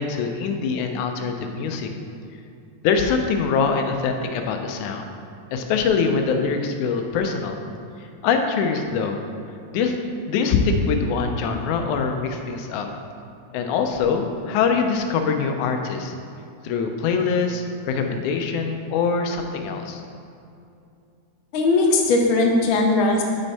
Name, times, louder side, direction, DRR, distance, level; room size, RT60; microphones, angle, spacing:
voice 1, 0.0-1.9 2.8-5.1 5.5-7.6 8.2-9.2 9.7-10.0 10.3-12.9 13.5-16.1 16.6-20.0, left 5 dB, 90° left, 4 dB, 2.1 m, -23 dB
voice 2, 21.5-23.2, left 3 dB, 65° left, 0 dB, 1.2 m, -19 dB
7.3 x 6.6 x 4.1 m, 2.5 s
omnidirectional pair, 3.4 m